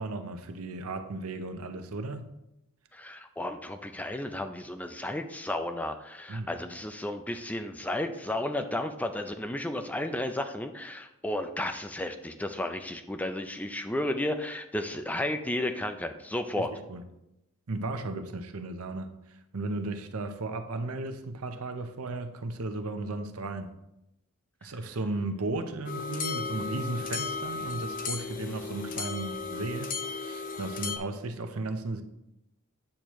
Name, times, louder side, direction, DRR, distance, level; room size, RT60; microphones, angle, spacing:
voice 1, 0.0-2.3 6.3-6.5 16.6-17.0 17.7-23.7 24.6-32.0, right 2 dB, 75° right, 8 dB, 0.7 m, -35 dB
voice 2, 2.9-16.7, left 1 dB, 5° left, 7 dB, 0.4 m, -33 dB
sound 1, 25.9-31.0, left 4 dB, 40° left, 0.7 m, -35 dB
8.6 x 6.4 x 3.0 m, 0.87 s
head